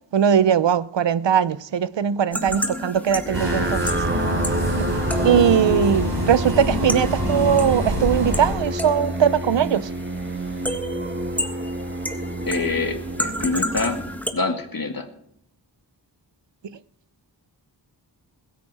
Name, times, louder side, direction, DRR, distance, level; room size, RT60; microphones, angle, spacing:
voice 1, 0.1-4.0 4.8-4.9 5.2-9.9, right 8 dB, 75° right, 0.7 m, -20 dB
sound 1, 2.3-14.3, equal, 5° left, 1.6 m, -33 dB
sound 2, 3.2-14.7, right 1 dB, 25° right, 1.5 m, -29 dB
sound 3, 3.3-8.5, equal, 55° right, 4.3 m, -26 dB
voice 2, 12.5-14.0 14.3-15.1, left 3 dB, 50° left, 2.2 m, -26 dB
21.5 x 9.3 x 4.2 m
wide cardioid pair, 70°, 44 cm